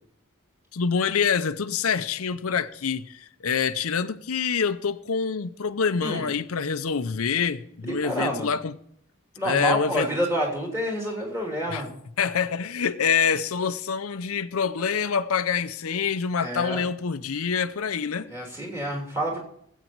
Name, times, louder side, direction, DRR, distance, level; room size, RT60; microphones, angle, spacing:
voice 1, 0.7-8.7 9.4-10.1 11.7-11.8 12.2-18.3, left 6 dB, 85° left, 0.6 m, -26 dB
voice 2, 7.9-8.5 9.4-11.9 16.4-16.9 18.3-19.4, right 1 dB, 10° right, 3.0 m, -28 dB
20.0 x 8.3 x 4.6 m
head